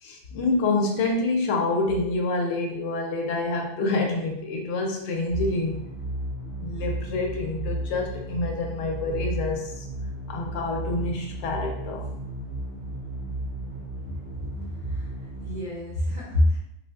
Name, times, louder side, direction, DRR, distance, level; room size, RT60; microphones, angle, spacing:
voice 1, 0.0-5.8 6.6-9.9 10.3-12.1, left 3 dB, 75° left, 1 dB, 0.9 m, -27 dB
sound 1, 5.3-15.6, right 2 dB, 85° right, 1.4 m, -34 dB
voice 2, 14.7-16.6, left 1 dB, 40° right, -8 dB, 1.0 m, -26 dB
3.6 x 2.5 x 2.2 m, 0.77 s
omnidirectional pair, 1.2 m